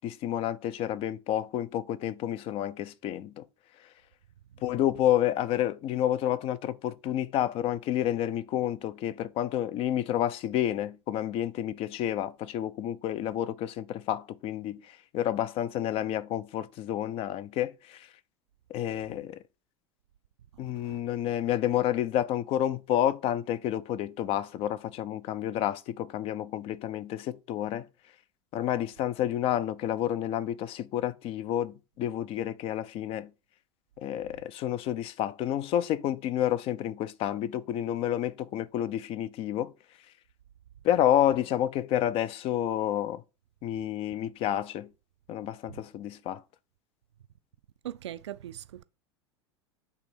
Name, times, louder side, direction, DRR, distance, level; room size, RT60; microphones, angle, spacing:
voice 1, 0.0-3.5 4.6-18.1 18.7-19.4 20.6-27.9 28.5-33.3 34.0-39.7 40.8-43.2 43.6-44.9 45.3-46.4, left 11 dB, 40° left, 0.5 m, -29 dB
voice 2, 20.6-21.0 45.7-45.8 47.8-48.8, right 12 dB, 70° right, 0.4 m, -41 dB
8.2 x 3.4 x 4.4 m
figure-of-eight pair, 80°, 15 cm